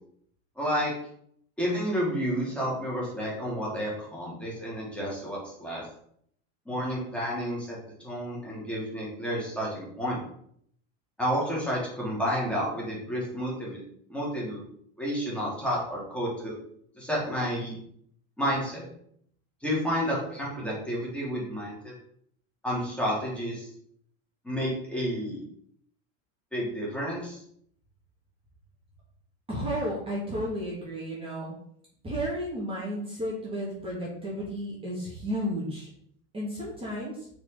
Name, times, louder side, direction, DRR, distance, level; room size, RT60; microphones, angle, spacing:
voice 1, 0.6-0.9 1.6-5.8 6.6-7.8 8.0-10.2 11.2-13.8 14.1-14.6 15.0-16.5 16.9-17.7 18.4-18.9 19.6-21.9 22.6-23.7 24.4-25.4 26.5-27.4, equal, 5° left, -6 dB, 3.5 m, -30 dB
voice 2, 29.5-31.5 32.0-35.9 36.3-37.3, equal, 20° right, -6 dB, 3.1 m, -33 dB
6.2 x 5.0 x 5.4 m, 0.67 s
supercardioid pair, 115°, 30 cm